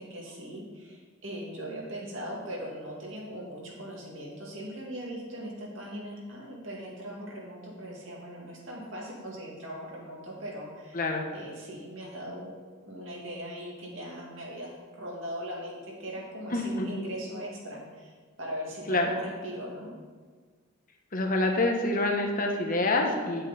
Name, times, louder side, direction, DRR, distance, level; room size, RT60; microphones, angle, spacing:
voice 1, 0.0-11.0 11.3-12.5 12.8-18.1 18.4-19.9, equal, 60° right, -3 dB, 2.4 m, -39 dB
voice 2, 16.5-16.9 18.9-19.1 21.1-23.4, left 2 dB, 40° left, 2 dB, 1.1 m, -26 dB
9.6 x 7.8 x 4.2 m, 1.5 s
head